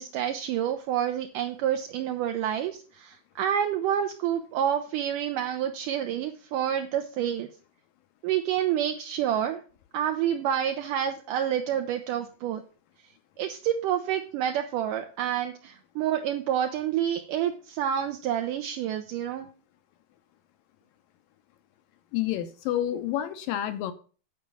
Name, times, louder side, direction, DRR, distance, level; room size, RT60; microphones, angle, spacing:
voice 1, 0.0-7.5 8.2-9.6 9.9-12.6 13.4-19.5, right 10 dB, 80° right, 2.0 m, -28 dB
voice 2, 22.1-23.9, left 12 dB, 75° left, 2.2 m, -29 dB
9.4 x 4.9 x 6.8 m
omnidirectional pair, 4.4 m